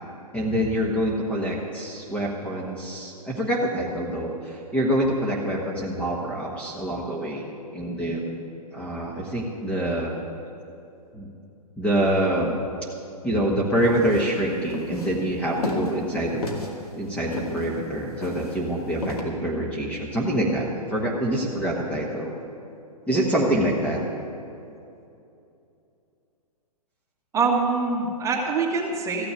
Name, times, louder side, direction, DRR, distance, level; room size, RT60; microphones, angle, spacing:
voice 1, 0.3-7.5 7.7-8.4 8.7-10.1 11.1-11.3 11.8-12.6 13.2-16.4 17.0-22.3 23.1-24.0, right 1 dB, 5° left, -3 dB, 1.3 m, -26 dB
sound 1, 13.8-19.2, left 2 dB, 70° left, 2.2 m, -33 dB
voice 2, 27.3-29.3, right 4 dB, 15° right, -1 dB, 1.7 m, -24 dB
14.5 x 6.8 x 9.0 m, 2.7 s
hypercardioid pair, 125°, 20 cm